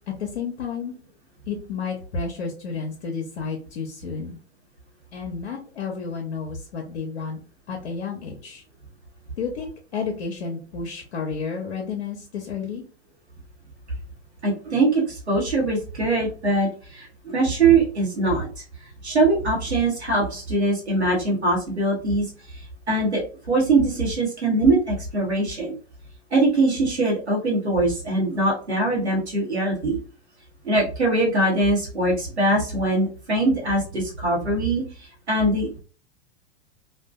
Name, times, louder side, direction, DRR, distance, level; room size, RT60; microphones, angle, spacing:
voice 1, 0.2-0.9 1.5-4.4 5.1-7.4 7.7-8.6 9.4-12.8, left 5 dB, 65° left, 1 dB, 0.6 m, -31 dB
voice 2, 14.4-18.6 19.0-25.7 26.3-30.0 30.6-35.8, right 2 dB, 90° right, -3 dB, 0.9 m, -22 dB
2.5 x 2.1 x 2.3 m, 0.38 s
figure-of-eight pair, 95°, 32 cm